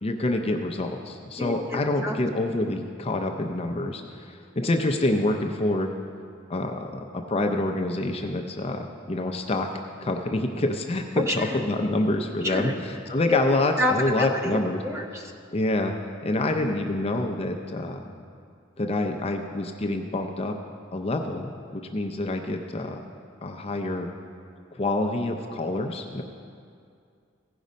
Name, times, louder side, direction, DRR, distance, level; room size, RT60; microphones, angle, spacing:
voice 1, 0.0-5.9 6.5-9.7 10.0-14.8 15.5-15.9 16.2-18.1 18.8-20.6 20.9-23.0 23.4-24.1 24.7-26.2, left 2 dB, 30° left, 4 dB, 0.5 m, -27 dB
voice 2, 1.4-2.2 11.2-11.6 12.4-12.7 13.3-13.4 13.8-15.2, left 1 dB, 15° right, 3 dB, 0.7 m, -28 dB
16.0 x 5.4 x 5.1 m, 2.3 s
head